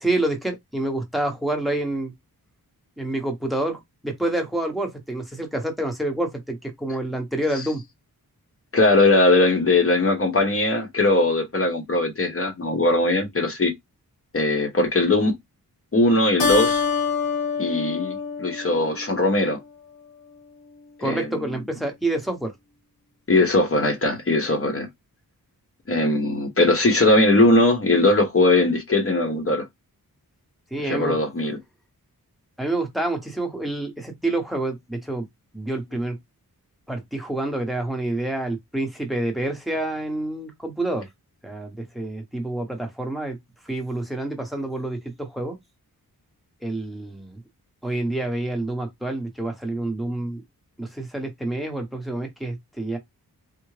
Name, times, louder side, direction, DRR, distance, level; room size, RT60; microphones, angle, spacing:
voice 1, 0.0-2.1 3.0-7.8 21.0-22.5 30.7-31.2 32.6-35.3 35.5-36.2 36.9-41.1 41.4-43.4 43.6-45.6 46.6-47.4 47.8-50.4 50.8-53.0, right 2 dB, ahead, 0.8 m, -28 dB
voice 2, 8.7-13.7 14.3-15.3 15.9-16.8 17.6-19.6 21.0-21.4 23.3-24.9 25.9-29.7 30.8-31.6, left 2 dB, 35° left, 0.9 m, -20 dB
Keyboard (musical), 16.4-19.3, left 6 dB, 65° left, 1.2 m, -25 dB
3.5 x 2.0 x 3.2 m
wide cardioid pair, 125°, 37 cm